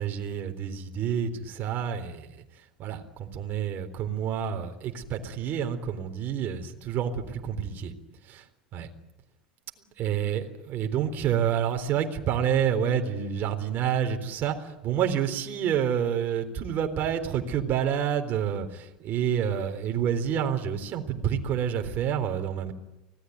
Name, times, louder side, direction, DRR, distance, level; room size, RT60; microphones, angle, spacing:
voice 1, 0.0-2.4 2.8-7.9 8.3-8.4 8.7-8.9 10.0-22.7, right 8 dB, 45° right, 5 dB, 3.8 m, -28 dB
25.5 x 18.5 x 9.5 m, 0.96 s
hypercardioid pair, 90°, 4 cm